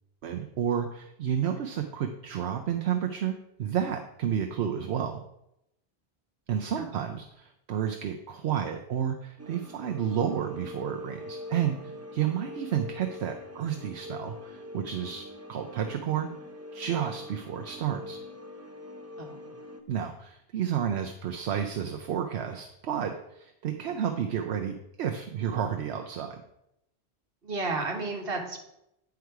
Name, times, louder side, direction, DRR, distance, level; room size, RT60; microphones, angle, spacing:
voice 1, 0.2-5.2 6.5-16.3 16.7-18.2 19.9-26.4, right 9 dB, 80° right, 5 dB, 0.9 m, -31 dB
sound 1, 9.4-19.8, left 1 dB, 20° right, 0.6 m, -43 dB
voice 2, 19.2-19.6 27.4-28.6, right 3 dB, 60° right, 2 dB, 1.6 m, -33 dB
9.4 x 4.8 x 4.6 m, 0.82 s
omnidirectional pair, 1.1 m